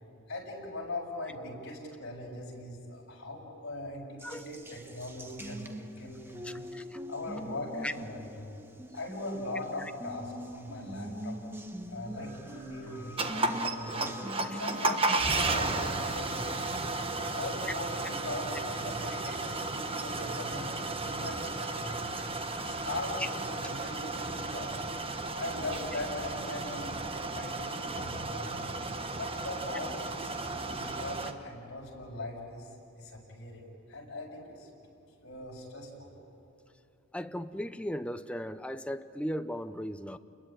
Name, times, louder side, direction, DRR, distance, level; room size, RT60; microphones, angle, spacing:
voice 1, 0.3-5.7 6.0-6.6 7.1-8.5 8.9-11.5 11.9-16.6 17.3-20.7 21.0-22.1 22.6-24.7 25.4-28.6 29.1-32.7 33.0-34.7 35.2-36.1, left 2 dB, 55° left, -3 dB, 6.5 m, -40 dB
Water tap faucet, 4.2-15.2, equal, 10° right, 1.2 m, -43 dB
voice 2, 6.4-7.0 7.8-7.9 9.8-9.9 13.4-13.5 14.4-14.6 23.2-23.3 37.1-40.2, equal, 5° left, 10 dB, 0.7 m, -37 dB
sound 1, 12.1-23.4, left 6 dB, 60° right, 7.1 m, -50 dB
sound 2, 13.2-31.3, right 3 dB, 25° right, 1.3 m, -34 dB
30.0 x 21.5 x 8.9 m, 2.8 s
head